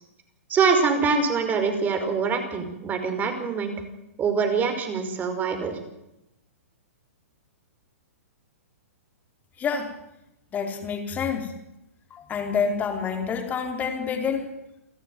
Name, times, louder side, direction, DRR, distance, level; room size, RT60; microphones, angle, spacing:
voice 1, 0.5-3.7 4.2-5.8, right 5 dB, 20° right, 7 dB, 5.3 m, -24 dB
voice 2, 9.6-9.9 10.5-11.5 12.1-14.5, left 6 dB, 20° left, 4 dB, 4.7 m, -27 dB
28.5 x 14.0 x 9.6 m, 0.89 s
hypercardioid pair, 130°, 8 cm